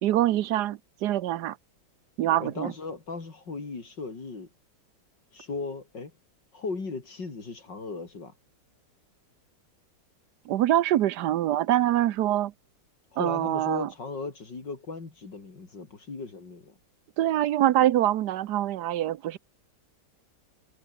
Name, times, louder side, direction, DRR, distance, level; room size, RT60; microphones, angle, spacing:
voice 1, 0.0-1.6 2.2-2.7 10.5-12.5 13.2-13.9 17.2-19.4, right 13 dB, 70° right, 1.2 m, -24 dB
voice 2, 2.4-4.5 5.3-6.1 6.5-8.3 13.1-16.7, left 4 dB, 70° left, 4.4 m, -37 dB
omnidirectional pair, 2.0 m